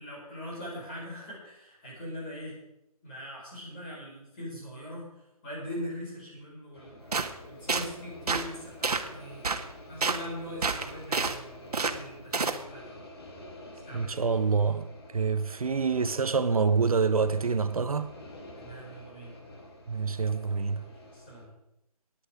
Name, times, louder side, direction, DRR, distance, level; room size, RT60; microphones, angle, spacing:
voice 1, 0.0-2.6 3.0-5.1 5.4-9.4 9.9-13.0 13.8-14.1 18.5-19.4 20.8-21.5, equal, 15° left, 5.2 m, -41 dB
sound 1, 6.7-21.5, left 1 dB, 40° left, 2.3 m, -48 dB
sound 2, 7.1-7.3 7.7-7.9 8.3-8.5 8.8-9.1 9.4-9.6 10.0-10.2 10.6-11.4 11.7-12.0 12.3-12.6, right 4 dB, 90° right, 1.4 m, -28 dB
voice 2, 13.9-14.9 15.1-18.1 19.9-20.8, right 5 dB, 70° right, 0.9 m, -26 dB
15.0 x 10.5 x 5.1 m
hypercardioid pair, 175°, 19 cm